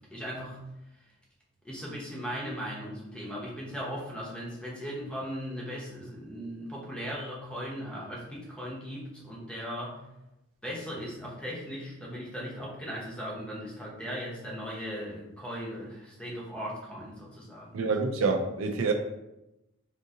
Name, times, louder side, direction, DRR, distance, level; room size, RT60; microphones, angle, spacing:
voice 1, 0.1-0.6 1.6-10.0 10.6-17.8, equal, 5° left, -4 dB, 0.8 m, -38 dB
voice 2, 17.7-18.9, right 4 dB, 75° right, 4 dB, 0.4 m, -27 dB
3.5 x 2.6 x 2.7 m, 0.93 s
head